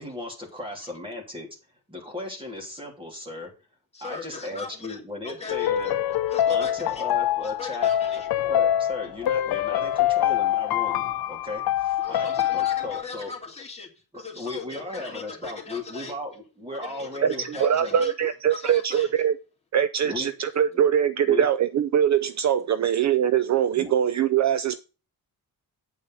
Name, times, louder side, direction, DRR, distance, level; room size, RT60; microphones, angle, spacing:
voice 1, 0.0-1.5 1.9-3.5 4.0-6.0 6.5-7.9 8.5-12.3 12.5-13.3 14.1-18.0 20.1-20.3 20.7-20.9 21.2-21.5 23.8-23.9, left 2 dB, 15° right, 3.2 m, -36 dB
voice 2, 3.9-5.9 6.3-7.1 7.4-8.5 12.0-13.9 14.1-16.2 16.7-18.1 18.5-19.1, left 4 dB, 15° left, 2.7 m, -39 dB
sound 1, 5.5-13.0, left 12 dB, 85° left, 0.6 m, -25 dB
voice 3, 17.2-19.3 19.7-24.8, right 9 dB, 50° right, 0.5 m, -22 dB
9.1 x 8.6 x 4.1 m
wide cardioid pair, 175°, 36 cm